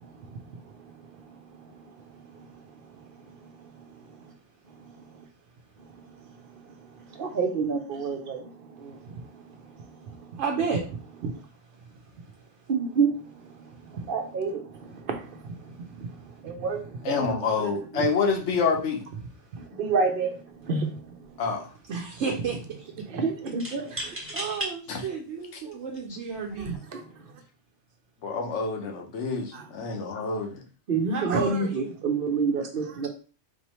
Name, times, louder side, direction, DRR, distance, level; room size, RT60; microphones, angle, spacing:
voice 1, 2.1-2.5 3.4-3.5 3.7-3.8 4.8-5.2 6.7-9.4 9.7-10.3 12.7-15.5 16.4-17.3 17.9-18.0 19.7-21.2 23.1-24.2 26.6-27.0 29.5-29.6 30.9-33.1, right 4 dB, 55° right, 0.9 m, -29 dB
voice 2, 10.4-11.3 11.8-12.5 13.7-14.0 15.7-16.3 16.6-16.7 19.5-19.7 21.9-23.0 23.4-23.5 23.9-26.8 31.1-31.9, right 5 dB, 80° right, 1.0 m, -33 dB
voice 3, 17.0-19.0 21.4-21.7 24.9-25.0 25.5-25.6 28.2-30.6, left 5 dB, 80° left, 1.2 m, -27 dB
sound 1, 20.5-20.7 21.0-21.7 23.6-24.7 25.4-25.5 26.4-26.8, right 1 dB, 10° right, 1.0 m, -35 dB
4.3 x 2.9 x 3.0 m
omnidirectional pair, 1.2 m